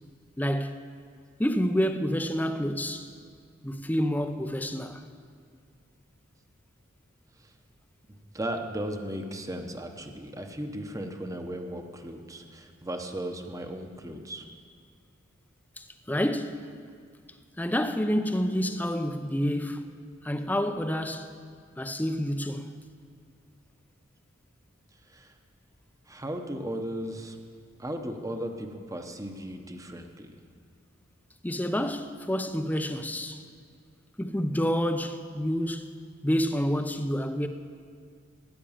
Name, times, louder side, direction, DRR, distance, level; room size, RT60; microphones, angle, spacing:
voice 1, 0.4-0.8 1.4-3.1 3.6-5.0 15.8-16.6 17.6-19.8 20.2-21.3 21.8-22.7 31.4-33.4 34.2-35.9 36.2-37.5, equal, 10° left, 0.6 m, -28 dB
voice 2, 8.3-14.5 25.1-25.3 26.1-27.4 27.8-30.4, right 1 dB, 15° right, 1.0 m, -36 dB
15.0 x 10.0 x 7.3 m
head